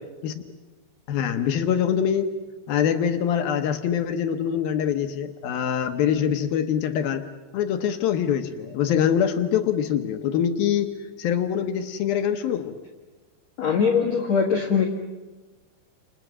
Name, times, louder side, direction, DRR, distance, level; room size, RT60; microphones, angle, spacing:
voice 1, 1.1-2.3 2.7-7.2 7.5-12.8, left 8 dB, 75° left, 7 dB, 2.3 m, -24 dB
voice 2, 13.6-14.9, left 6 dB, 55° left, 1 dB, 2.0 m, -21 dB
30.0 x 28.5 x 6.2 m, 1.2 s
omnidirectional pair, 5.4 m